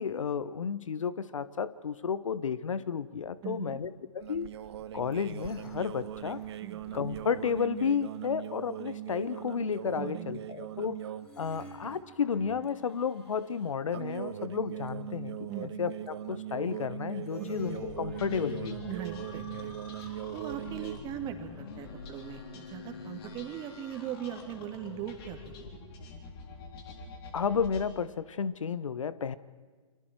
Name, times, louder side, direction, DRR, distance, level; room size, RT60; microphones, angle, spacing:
voice 1, 0.0-4.5 4.9-6.4 6.9-11.0 11.4-18.9 27.3-29.4, left 6 dB, 70° left, 17 dB, 1.2 m, -32 dB
voice 2, 3.4-3.8 6.6-6.8 10.0-10.8 15.5-15.7 17.4-17.5 18.9-19.7 20.0-25.7, right 9 dB, 25° right, 5 dB, 2.8 m, -40 dB
sound 1, 4.2-11.3 11.6-12.0 13.9-21.0, right 11 dB, 50° right, 1.0 m, -40 dB
sound 2, 5.2-7.9 11.2-14.3 17.2-20.4, left 5 dB, 10° left, 7.1 m, -50 dB
sound 3, 17.6-27.9, left 4 dB, 45° left, 3.8 m, -46 dB
29.0 x 25.0 x 4.7 m, 1.5 s
figure-of-eight pair, 125°, 17 cm